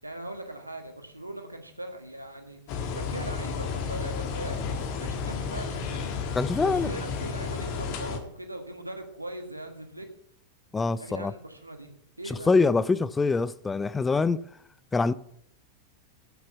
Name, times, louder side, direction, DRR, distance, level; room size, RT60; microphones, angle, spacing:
voice 1, 0.0-2.6 2.9-6.2 6.6-10.1 11.0-11.9 12.2-12.5, right 1 dB, 85° right, 1.6 m, -40 dB
sound 1, 2.7-8.2, left 5 dB, 45° left, 1.5 m, -32 dB
voice 2, 6.3-6.9 10.7-11.3 12.3-14.4 14.9-15.1, left 4 dB, 15° left, 0.4 m, -24 dB
9.3 x 7.3 x 8.3 m
figure-of-eight pair, 90°, 0 cm